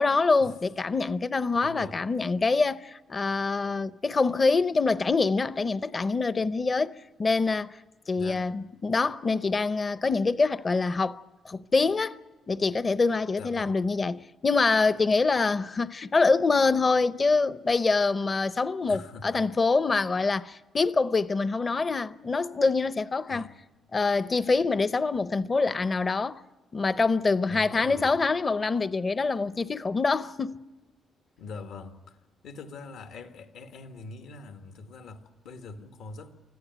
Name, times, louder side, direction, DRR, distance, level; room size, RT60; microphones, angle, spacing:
voice 1, 0.0-6.9 7.2-7.7 8.1-12.2 12.5-23.5 23.9-26.4 26.7-30.6, left 4 dB, 30° left, 0.6 m, -25 dB
voice 2, 1.6-2.0 8.1-8.5 13.4-13.8 18.9-19.5 23.3-23.5 27.4-28.2 31.4-36.3, left 4 dB, 80° left, 1.6 m, -43 dB
25.0 x 14.5 x 9.4 m
cardioid pair, 90°, 0 cm